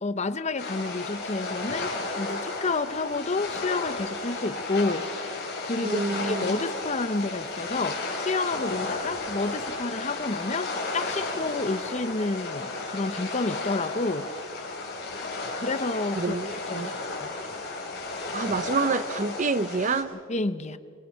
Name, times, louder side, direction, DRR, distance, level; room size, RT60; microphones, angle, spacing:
voice 1, 0.0-14.3 15.6-16.4 16.7-17.0 17.2-17.3 20.3-20.8, left 3 dB, 30° left, 12 dB, 0.7 m, -30 dB
sound 1, 0.6-20.0, left 3 dB, 50° left, 4.8 m, -33 dB
voice 2, 5.8-6.5 16.2-16.9 18.3-20.1, right 4 dB, 35° right, 14 dB, 0.6 m, -28 dB
25.0 x 23.5 x 5.6 m, 2.2 s
head